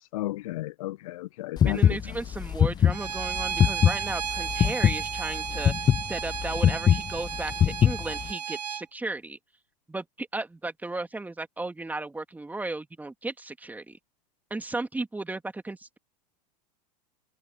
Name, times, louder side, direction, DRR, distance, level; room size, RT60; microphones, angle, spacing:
voice 1, 0.1-2.2, left 17 dB, 55° left, 1.5 m, -34 dB
sound 1, 1.6-8.3, left 9 dB, 20° left, 0.6 m, -22 dB
voice 2, 1.6-5.7 6.0-9.4 9.9-14.0 14.5-16.0, right 2 dB, 10° right, 2.6 m, -35 dB
Bowed string instrument, 2.9-8.8, right 8 dB, 75° right, 1.0 m, -33 dB
figure-of-eight pair, 85°, 21 cm